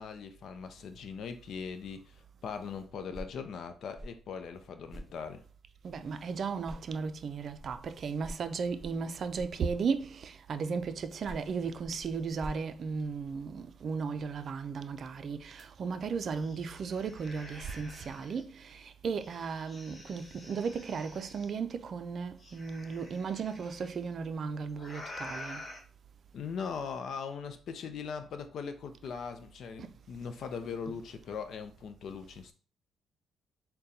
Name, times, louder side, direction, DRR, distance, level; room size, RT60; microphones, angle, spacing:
voice 1, 0.0-5.4 26.3-32.5, left 6 dB, 65° left, 0.5 m, -40 dB
sound 1, 3.0-6.3 6.6-10.1 11.0-13.6, right 1 dB, 5° right, 0.7 m, -50 dB
voice 2, 5.8-10.1 10.5-15.4 15.8-18.4 19.0-25.6, right 5 dB, 55° right, 0.4 m, -35 dB
sound 2, 15.6-15.7 16.0-18.4 19.1-21.5 22.4-23.9 24.7-25.8, left 1 dB, 35° left, 1.3 m, -48 dB
4.1 x 2.2 x 3.8 m
cardioid pair, 90°, 0 cm